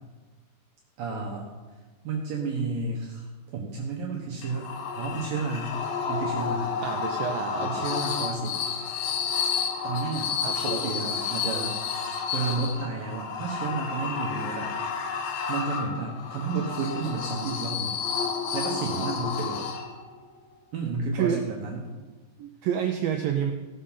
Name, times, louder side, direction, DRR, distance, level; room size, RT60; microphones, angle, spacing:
voice 1, 1.0-1.5 2.0-4.7 4.9-5.8 6.1-6.8 7.6-8.6 9.8-10.3 10.6-11.8 12.3-14.7 15.5-18.0 18.5-19.7 20.7-21.9, right 4 dB, 65° right, -1 dB, 2.5 m, -31 dB
sound 1, 4.4-20.2, left 6 dB, 85° left, 3.4 m, -31 dB
voice 2, 6.8-7.9 10.4-10.6 21.1-21.4 22.4-23.5, right 8 dB, 90° right, 4 dB, 1.9 m, -28 dB
17.5 x 6.7 x 5.6 m, 1.3 s
omnidirectional pair, 5.0 m